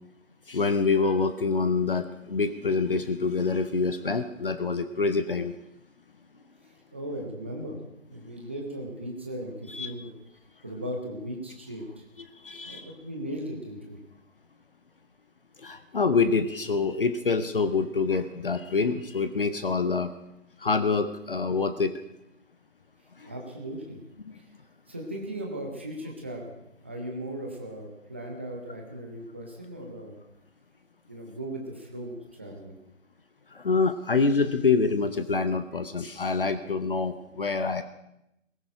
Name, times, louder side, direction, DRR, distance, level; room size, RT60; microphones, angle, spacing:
voice 1, 0.5-5.5 9.7-9.9 12.4-12.9 15.6-20.1 20.6-21.9 23.2-23.3 33.5-37.8, left 4 dB, 45° left, 11 dB, 0.8 m, -26 dB
voice 2, 6.6-7.8 8.1-10.1 10.6-12.0 12.6-14.0 23.3-24.0 24.4-24.5 24.9-26.5 26.8-30.1 31.1-32.8, right 1 dB, 10° right, 0 dB, 0.7 m, -37 dB
17.5 x 15.0 x 4.9 m, 0.83 s
figure-of-eight pair, 150°, 40 cm